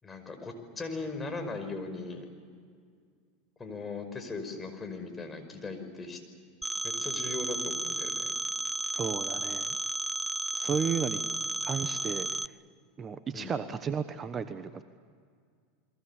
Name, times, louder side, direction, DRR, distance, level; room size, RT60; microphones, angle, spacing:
voice 1, 0.0-2.2 3.6-6.2 6.8-8.3 13.3-13.5, left 3 dB, 20° left, 6 dB, 5.3 m, -38 dB
Telephone, 6.6-12.5, right 2 dB, 10° right, 0.6 m, -33 dB
voice 2, 8.9-9.8 10.6-11.2 11.6-12.3 13.0-14.8, right 6 dB, 30° right, 10 dB, 1.2 m, -33 dB
30.0 x 22.5 x 7.2 m, 2.1 s
hypercardioid pair, 90°, 0 cm